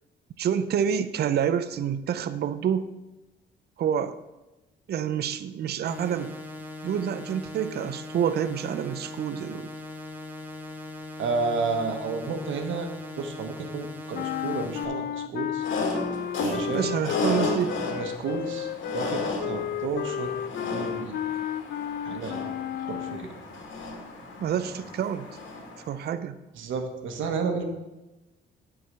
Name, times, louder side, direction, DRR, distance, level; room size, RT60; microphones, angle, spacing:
voice 1, 0.4-2.9 3.8-4.2 4.9-6.4 6.8-9.7 16.7-17.7 24.4-25.3 25.9-26.4, right 8 dB, 55° right, 12 dB, 0.5 m, -28 dB
sound 1, 5.8-14.8, left 2 dB, 10° right, 1.5 m, -40 dB
voice 2, 11.2-12.9 13.2-15.7 16.4-17.0 17.9-20.3 20.7-21.2 22.0-22.4 22.9-23.3 24.6-24.7 26.5-27.7, right 4 dB, 80° right, 6 dB, 1.3 m, -31 dB
sound 2, 14.1-23.3, left 10 dB, 55° left, 0.4 m, -33 dB
sound 3, 15.6-25.9, left 2 dB, 80° left, 2.4 m, -34 dB
9.5 x 4.7 x 6.9 m, 1.0 s
cardioid pair, 90°, 20 cm